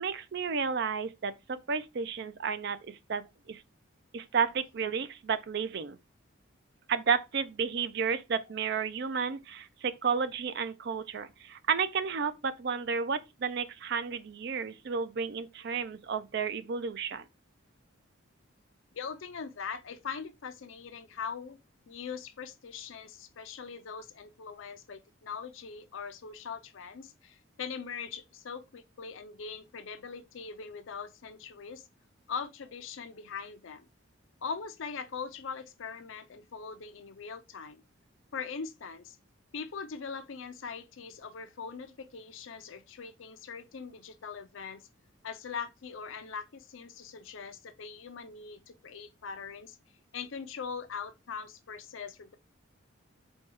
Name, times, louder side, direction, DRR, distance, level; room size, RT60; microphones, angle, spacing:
voice 1, 0.0-3.6 4.1-6.0 6.9-17.2, right 6 dB, 55° right, 0.4 m, -32 dB
voice 2, 18.9-21.6 21.9-31.8 32.3-33.9 34.4-37.8 38.3-39.2 39.5-44.8 45.2-49.8 50.1-52.4, left 6 dB, 70° left, 0.5 m, -41 dB
4.3 x 2.3 x 4.6 m
head